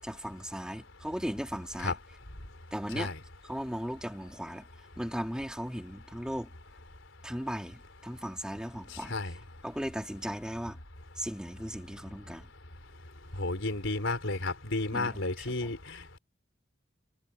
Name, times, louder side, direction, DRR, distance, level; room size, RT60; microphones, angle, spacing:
voice 1, 0.0-2.0 2.7-3.1 3.4-4.6 5.0-6.5 7.2-9.2 9.6-10.8 11.2-12.5 14.9-15.5, equal, 5° right, 2.2 m, -37 dB
voice 2, 13.4-16.2, left 2 dB, 85° left, 4.2 m, -32 dB
head